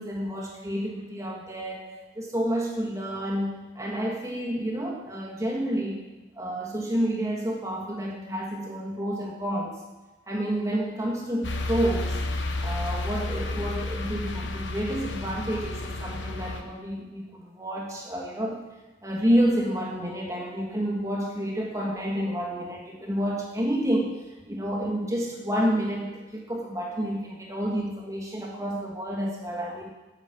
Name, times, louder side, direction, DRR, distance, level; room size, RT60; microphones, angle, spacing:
voice 1, 0.0-1.8 2.1-6.0 6.3-9.8 10.3-12.2 12.6-18.6 19.0-24.2 24.4-29.9, equal, 15° right, -2 dB, 1.5 m, -29 dB
sound 1, 11.4-16.6, left 2 dB, 85° left, 1.0 m, -31 dB
8.7 x 8.2 x 5.8 m, 1.1 s
head